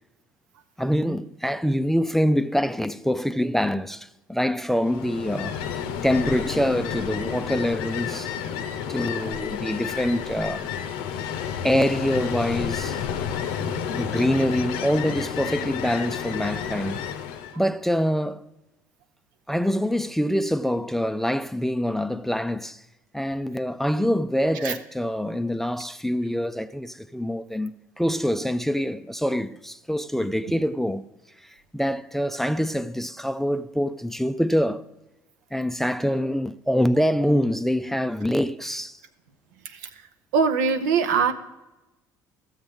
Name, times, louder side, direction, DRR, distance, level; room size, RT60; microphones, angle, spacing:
voice 1, 0.8-5.6 6.0-8.3 8.9-10.7 11.6-13.0 13.9-17.0 17.6-18.4 19.5-22.8 23.1-31.0 31.4-34.8 35.5-39.0, equal, 5° left, 0.4 m, -25 dB
Ocean, 4.8-17.6, left 8 dB, 70° left, 0.6 m, -31 dB
voice 2, 40.3-41.3, right 5 dB, 80° right, 0.7 m, -21 dB
14.0 x 7.2 x 3.5 m
hypercardioid pair, 60°, 9 cm